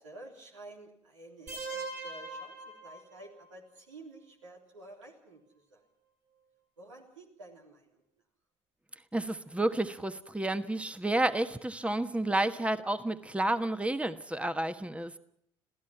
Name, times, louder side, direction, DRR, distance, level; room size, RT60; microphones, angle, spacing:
voice 1, 0.0-5.4 5.7-5.8 6.8-8.0, right 2 dB, 85° right, 0 dB, 3.6 m, -51 dB
sound 1, 1.5-3.4, right 3 dB, 50° right, 7.5 m, -41 dB
voice 2, 9.1-15.1, right 1 dB, 10° right, 11 dB, 1.3 m, -30 dB
27.5 x 16.5 x 5.8 m, 0.70 s
figure-of-eight pair, 50°, 16 cm